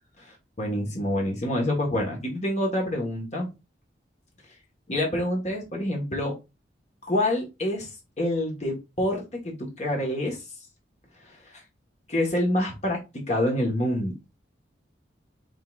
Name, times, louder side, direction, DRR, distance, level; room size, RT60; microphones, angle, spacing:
voice 1, 0.2-3.5 4.9-6.3 7.1-7.9 8.2-10.4 11.2-11.4 12.1-14.1, left 1 dB, 35° left, 0 dB, 1.3 m, -27 dB
5.4 x 4.0 x 2.4 m, 0.25 s
head